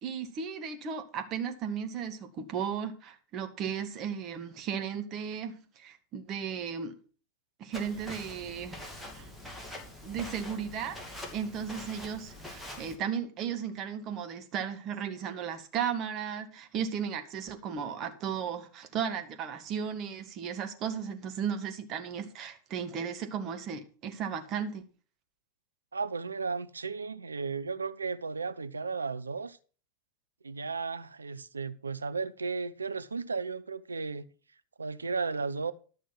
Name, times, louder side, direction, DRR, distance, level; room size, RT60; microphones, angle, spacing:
voice 1, 0.0-7.0 7.6-9.3 10.0-11.0 11.3-24.8, right 7 dB, 35° right, 1.6 m, -35 dB
Walk footsteps, 7.7-13.0, left 1 dB, ahead, 2.7 m, -44 dB
voice 2, 25.9-29.6 30.4-34.3 34.8-35.7, right 4 dB, 75° right, 0.6 m, -34 dB
12.0 x 6.4 x 6.0 m
figure-of-eight pair, 90°, 0 cm